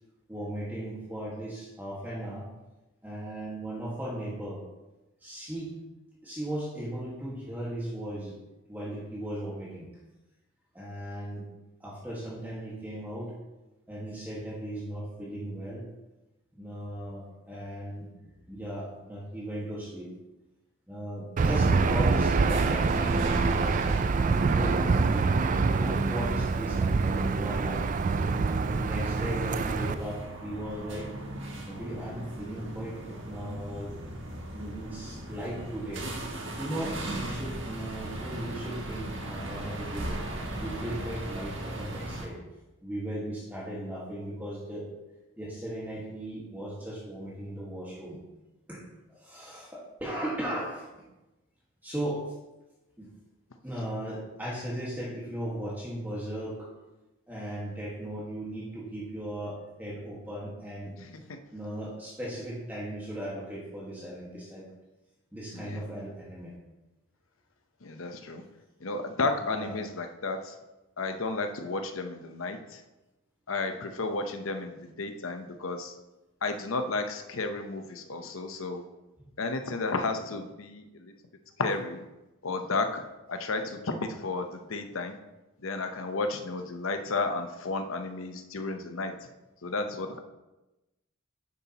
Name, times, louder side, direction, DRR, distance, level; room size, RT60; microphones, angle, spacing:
voice 1, 0.3-2.5 3.0-4.6 5.2-5.8 6.2-8.4 8.7-9.9 10.7-11.5 11.8-13.3 13.9-15.8 16.6-18.1 18.5-20.1 20.9-23.8 24.3-25.2 25.8-27.9 28.6-31.1 31.6-33.9 34.5-36.0 36.6-40.2 40.6-42.4 42.8-44.9 45.4-48.2 48.7-48.8 49.1-51.0 51.8-52.2 53.0-53.1 53.6-56.7 57.3-60.9 61.5-64.6 65.3-66.5 69.4-69.8, right 1 dB, 10° right, -6 dB, 1.6 m, -37 dB
Aircraft / Engine, 21.4-29.9, right 4 dB, 35° right, 0.3 m, -25 dB
sound 1, 22.4-42.3, right 1 dB, 55° right, 1.4 m, -39 dB
voice 2, 67.8-68.4 68.8-70.5 71.0-72.8 73.5-75.9 76.4-78.8 79.4-81.1 81.6-82.0 82.4-83.0 83.3-85.2 85.6-89.1 89.6-90.2, left 3 dB, 70° left, 6 dB, 0.8 m, -32 dB
10.0 x 7.0 x 2.9 m, 1.0 s
head